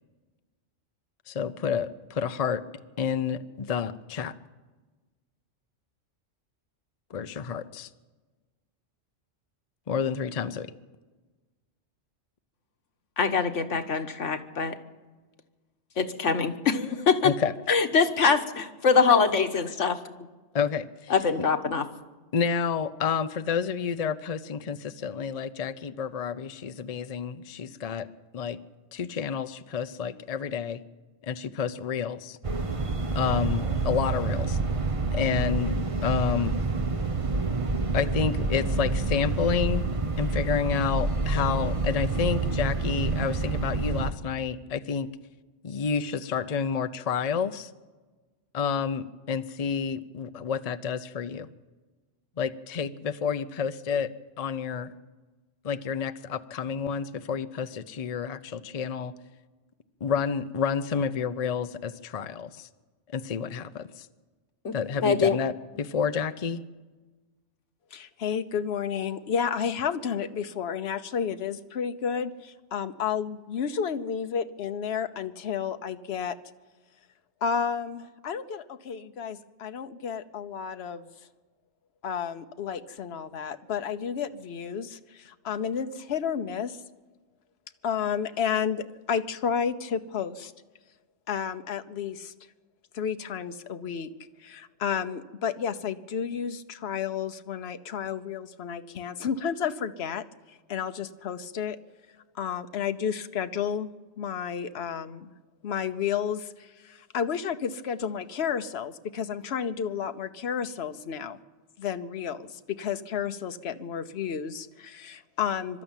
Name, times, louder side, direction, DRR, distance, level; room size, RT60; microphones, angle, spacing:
voice 1, 1.3-2.6 3.0-4.3 7.1-7.9 9.9-10.7 17.2-17.5 20.5-21.1 22.3-28.1 28.3-28.6 28.9-30.8 31.2-32.4 33.1-34.6 35.1-36.6 37.9-39.8 40.2-45.1 45.6-47.7 48.5-51.5 52.4-54.1 54.4-54.9 55.6-59.1 60.0-62.7 63.1-64.1 64.7-66.6, left 6 dB, 40° left, 11 dB, 0.7 m, -29 dB
voice 2, 13.2-14.8 16.0-17.3 17.7-20.0 21.1-21.8 64.6-65.4, left 5 dB, 85° left, 7 dB, 1.6 m, -24 dB
sound 1, 32.4-44.1, right 3 dB, 30° right, 1.0 m, -28 dB
voice 3, 67.9-76.4 77.4-81.1 82.0-86.8 87.8-90.5 91.3-92.3 92.9-94.1 94.4-101.8 102.3-103.9 104.2-105.3 105.6-111.4 111.8-115.8, left 7 dB, 60° left, 9 dB, 1.1 m, -31 dB
24.0 x 12.5 x 9.0 m, 1.3 s
omnidirectional pair, 1.2 m